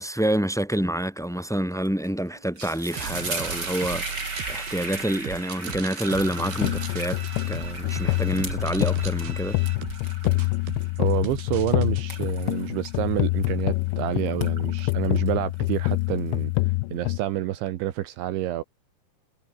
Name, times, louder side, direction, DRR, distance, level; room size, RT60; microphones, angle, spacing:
voice 1, 0.0-4.2 4.5-7.2 7.5-9.6, right 1 dB, ahead, 6.3 m, -27 dB
sound 1, 1.8-2.1 2.4-13.9 14.3-16.2, right 2 dB, 20° right, 6.6 m, -37 dB
sound 2, 2.9-12.0, right 7 dB, 60° right, 5.4 m, -37 dB
sound 3, 6.2-17.2, left 23 dB, 85° left, 2.7 m, -26 dB
voice 2, 11.0-16.5 16.9-18.6, right 14 dB, 75° right, 3.6 m, -28 dB
omnidirectional pair, 5.5 m